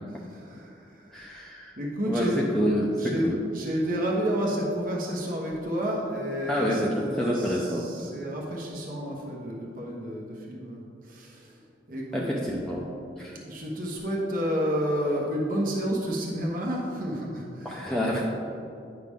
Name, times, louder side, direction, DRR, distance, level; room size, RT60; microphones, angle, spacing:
voice 1, 0.3-1.1 1.8-2.5 3.0-3.3 3.5-11.5 11.9-12.3 13.4-17.8, equal, 50° right, -2 dB, 1.1 m, -30 dB
voice 2, 1.1-1.7 2.1-3.4 6.4-7.9 12.1-12.9 13.2-13.4 17.6-18.2, equal, 5° left, -5 dB, 0.6 m, -28 dB
9.4 x 5.8 x 3.6 m, 2.6 s
head